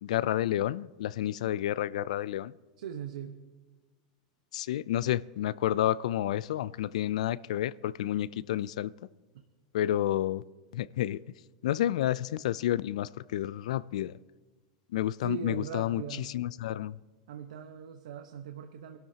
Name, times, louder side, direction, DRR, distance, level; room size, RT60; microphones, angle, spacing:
voice 1, 0.0-2.5 4.5-8.9 9.7-10.4 10.7-11.2 11.6-14.2 14.9-16.0 16.3-17.0, left 12 dB, 70° left, 0.4 m, -30 dB
voice 2, 2.8-3.4 15.2-16.3 17.3-19.0, right 8 dB, 85° right, 1.1 m, -40 dB
25.0 x 12.0 x 2.9 m
supercardioid pair, 175°, 4 cm